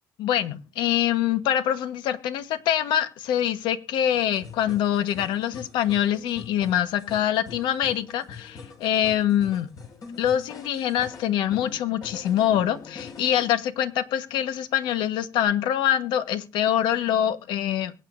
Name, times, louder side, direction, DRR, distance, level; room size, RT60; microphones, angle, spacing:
voice 1, 0.2-9.7 10.2-17.9, left 10 dB, 85° left, 11 dB, 1.3 m, -24 dB
sound 1, 4.1-13.5, left 5 dB, 55° left, 5.3 m, -44 dB
22.5 x 9.1 x 2.6 m, 0.30 s
cardioid pair, 120°, 8 cm